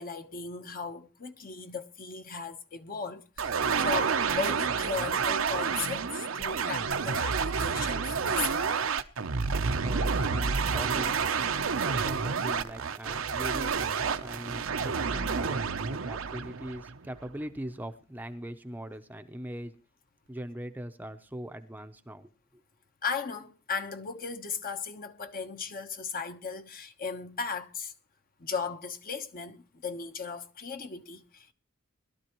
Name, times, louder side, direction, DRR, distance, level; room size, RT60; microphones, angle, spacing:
voice 1, 0.0-8.9 23.0-27.9 28.4-31.5, left 5 dB, 45° left, 1.1 m, -36 dB
sound 1, 3.4-17.3, right 5 dB, 75° right, 0.7 m, -29 dB
voice 2, 9.8-11.2 11.8-19.8 20.3-22.3, right 1 dB, 10° right, 0.7 m, -41 dB
21.0 x 12.5 x 3.0 m
head